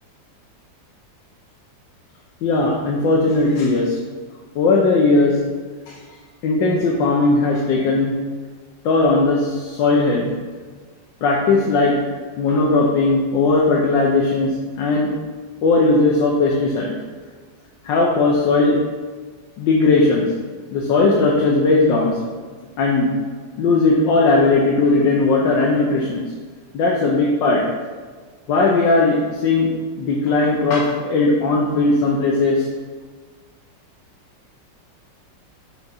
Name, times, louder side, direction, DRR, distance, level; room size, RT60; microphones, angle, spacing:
voice 1, 2.4-4.0 4.5-5.4 5.9-6.0 6.4-8.1 8.8-10.3 11.2-11.9 12.4-15.1 15.6-16.9 17.8-18.8 19.6-20.3 20.7-22.3 22.8-23.1 23.6-26.2 26.7-27.6 28.5-29.7 30.0-32.7, left 3 dB, 85° left, -2 dB, 1.5 m, -17 dB
6.5 x 3.5 x 5.6 m, 1.5 s
omnidirectional pair, 2.0 m